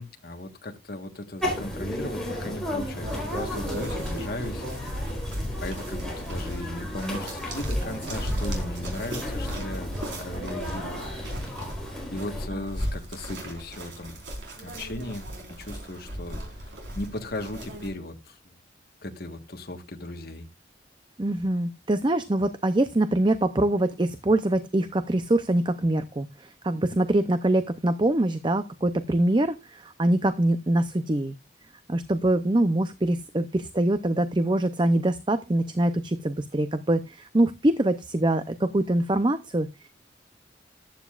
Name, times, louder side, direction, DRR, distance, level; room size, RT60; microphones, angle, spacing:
voice 1, 0.0-4.7 5.6-11.1 12.1-14.1 14.6-15.3 15.6-16.7 16.9-18.5 19.0-20.5, left 1 dB, 55° left, 1.5 m, -37 dB
sound 1, 1.4-12.5, left 1 dB, 5° left, 4.0 m, -34 dB
sound 2, 3.0-17.9, equal, 85° right, 4.4 m, -35 dB
voice 2, 21.2-31.3 31.9-39.9, right 1 dB, 25° right, 0.6 m, -24 dB
14.0 x 10.5 x 2.5 m
head